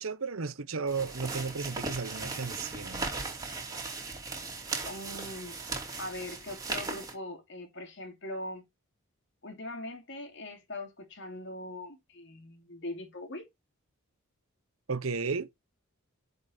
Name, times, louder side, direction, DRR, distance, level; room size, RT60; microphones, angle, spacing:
voice 1, 0.0-3.1 14.9-15.5, right 4 dB, 70° right, 0.9 m, -34 dB
sound 1, 0.9-7.1, right 3 dB, 15° right, 3.1 m, -37 dB
voice 2, 4.8-5.6 6.0-8.6 9.4-13.5, left 1 dB, 55° left, 2.6 m, -41 dB
10.5 x 5.3 x 3.9 m
head